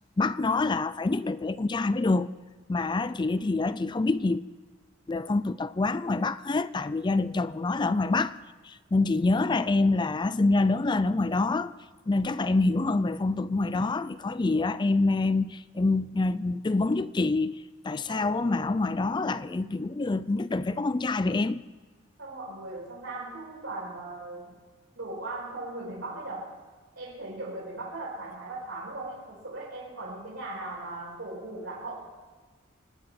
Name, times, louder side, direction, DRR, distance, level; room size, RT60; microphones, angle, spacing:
voice 1, 0.2-2.3 2.7-4.4 5.1-8.4 8.6-11.7 12.1-21.6, left 3 dB, 20° left, 0.4 m, -26 dB
voice 2, 18.1-18.8 22.2-24.6 25.0-26.6 26.9-32.0, right 2 dB, 80° right, 5.3 m, -38 dB
25.0 x 9.8 x 5.9 m
head